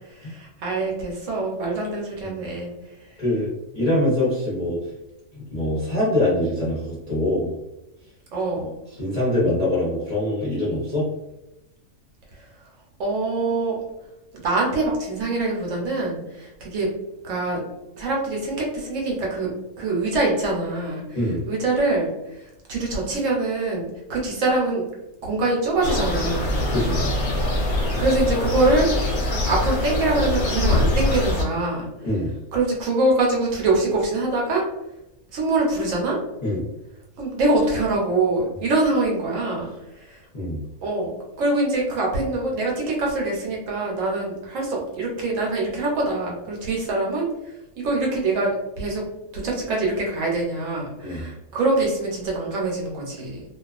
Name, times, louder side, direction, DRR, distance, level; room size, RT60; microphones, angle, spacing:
voice 1, 0.0-2.7 3.1-3.2 8.3-8.7 12.3-12.5 13.0-13.8 14.4-16.9 17.2-17.6 18.0-19.5 19.8-21.2 21.5-24.8 25.2-26.6 28.0-28.9 29.5-31.9 32.5-34.6 35.3-36.2 37.2-39.7 40.0-40.2 40.8-49.0 49.3-53.4, right 2 dB, 70° right, -2 dB, 0.9 m, -24 dB
voice 2, 3.2-4.8 5.3-7.5 8.6-8.7 9.0-11.1 21.1-21.4 26.7-27.2 32.0-32.3 36.4-36.7 40.3-40.7 51.0-51.2, left 1 dB, 40° left, -8 dB, 0.6 m, -24 dB
sound 1, 25.8-31.4, left 1 dB, 65° left, 0.9 m, -23 dB
2.3 x 2.3 x 2.3 m, 0.94 s
omnidirectional pair, 1.4 m